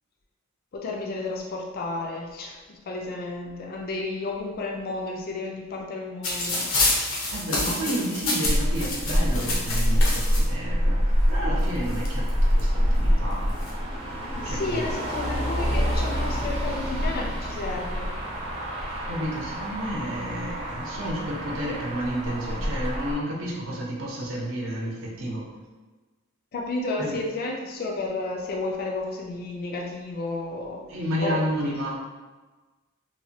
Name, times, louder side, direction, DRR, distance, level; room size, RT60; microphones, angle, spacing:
voice 1, 0.7-6.6 14.4-18.1 26.5-30.8 31.2-31.4 31.6-31.7, left 3 dB, 45° left, -1 dB, 0.4 m, -32 dB
sound 1, 6.2-10.4 11.3-11.4 11.6-12.6 13.3-13.7, left 2 dB, 80° left, 0.7 m, -28 dB
voice 2, 7.3-13.5 14.4-14.9 19.1-25.4 27.0-27.2 30.9-32.0, equal, 70° right, -3 dB, 0.7 m, -31 dB
Motor vehicle (road), 8.4-23.1, equal, 30° right, 0.6 m, -26 dB
3.1 x 2.1 x 2.8 m, 1.3 s
head